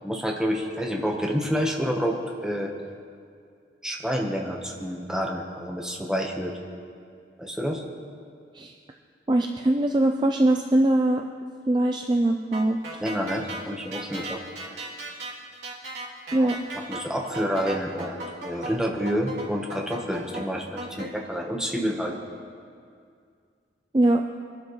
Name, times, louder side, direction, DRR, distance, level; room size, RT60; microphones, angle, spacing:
voice 1, 0.0-2.7 3.8-6.6 7.4-7.8 13.0-14.4 16.4-16.5 16.9-22.2, equal, 5° right, 0 dB, 1.2 m, -28 dB
voice 2, 9.3-11.2 11.7-13.0 16.3-16.6 23.9-24.2, right 1 dB, 25° right, 4 dB, 0.4 m, -22 dB
sound 1, 12.5-21.1, right 2 dB, 75° right, 3.0 m, -37 dB
24.0 x 12.0 x 3.2 m, 2.3 s
head